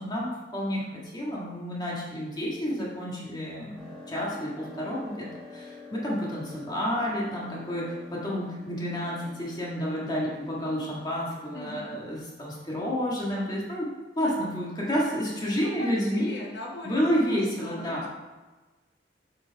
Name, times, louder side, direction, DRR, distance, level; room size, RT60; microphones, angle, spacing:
voice 1, 0.0-3.8 4.1-16.3 16.8-18.1, equal, 25° left, -5 dB, 1.6 m, -30 dB
sound 1, 3.8-12.0, left 3 dB, 5° left, 1.5 m, -47 dB
voice 2, 11.5-12.0 15.6-17.0 17.3-18.1, left 1 dB, 70° left, -1 dB, 1.2 m, -39 dB
7.4 x 4.7 x 4.6 m, 1.2 s
head